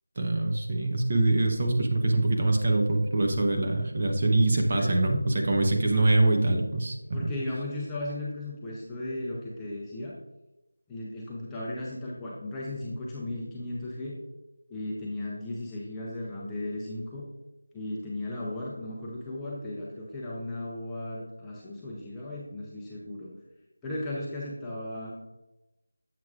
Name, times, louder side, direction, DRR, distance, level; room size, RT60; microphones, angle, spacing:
voice 1, 0.2-7.0, right 2 dB, 30° right, 2 dB, 0.6 m, -24 dB
voice 2, 7.1-10.1 10.9-14.1 14.7-17.3 17.7-23.3 23.8-25.1, left 1 dB, 5° left, -6 dB, 0.5 m, -36 dB
7.4 x 6.1 x 2.4 m, 0.97 s
figure-of-eight pair, 175°, 0 cm